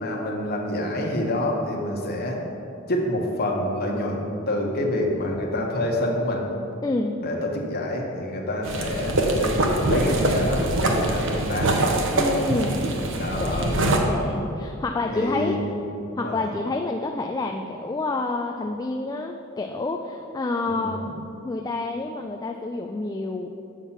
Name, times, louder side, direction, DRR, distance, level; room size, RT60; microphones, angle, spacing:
voice 1, 0.0-2.4 2.9-6.4 7.2-9.6 9.9-11.8 13.2-13.7 15.1-15.8 16.1-16.4 20.7-21.0, left 1 dB, 50° left, 0 dB, 1.2 m, -27 dB
voice 2, 6.8-7.2 12.1-12.8 13.4-15.6 16.2-21.1 21.4-23.5, left 2 dB, 20° left, 3 dB, 0.3 m, -28 dB
sound 1, 8.6-14.0, right 1 dB, 65° right, 0.9 m, -23 dB
7.3 x 5.8 x 5.7 m, 2.7 s
head